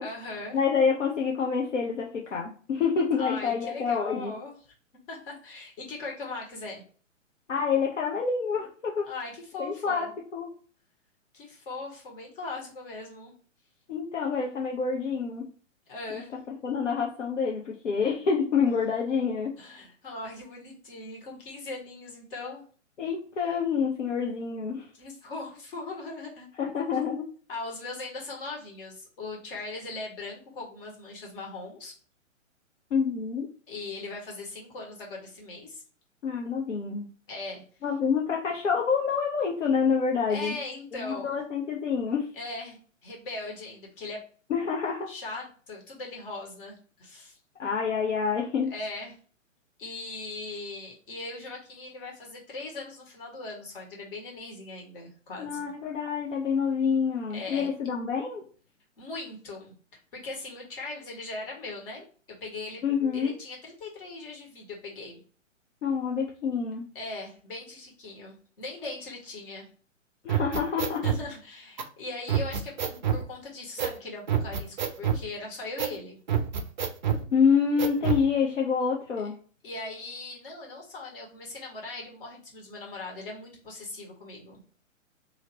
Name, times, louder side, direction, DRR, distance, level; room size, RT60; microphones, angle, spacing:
voice 1, 0.0-0.6 3.2-4.7 5.1-6.8 9.0-10.1 11.3-13.3 15.9-16.3 19.6-22.6 25.0-26.5 27.5-31.9 33.7-35.8 37.3-37.6 40.3-41.4 42.3-44.2 45.1-47.4 48.7-49.2 49.8-55.7 57.3-57.7 59.0-59.7 60.1-62.0 62.4-62.8 63.1-65.2 66.9-69.7 71.0-76.2 79.2-79.3 79.6-84.6, left 3 dB, 45° left, -1 dB, 1.6 m, -39 dB
voice 2, 0.5-4.3 7.5-9.1 9.6-10.1 10.3-10.5 13.9-15.5 16.1-16.2 16.6-19.5 23.0-24.9 26.6-27.3 32.9-33.5 36.2-37.1 37.8-40.5 40.9-42.3 44.5-45.1 47.6-48.7 55.4-58.4 62.8-63.3 65.8-66.9 70.2-71.0 77.3-79.3, left 6 dB, 65° left, -1 dB, 0.8 m, -27 dB
sound 1, 70.3-71.2 71.8-71.9 72.3-73.2 73.8-74.0 74.3-75.2 75.8-76.0 76.3-77.2 77.8-78.3, right 8 dB, 40° right, 0.4 m, -27 dB
2.8 x 2.8 x 2.8 m, 0.43 s
figure-of-eight pair, 120°, 39 cm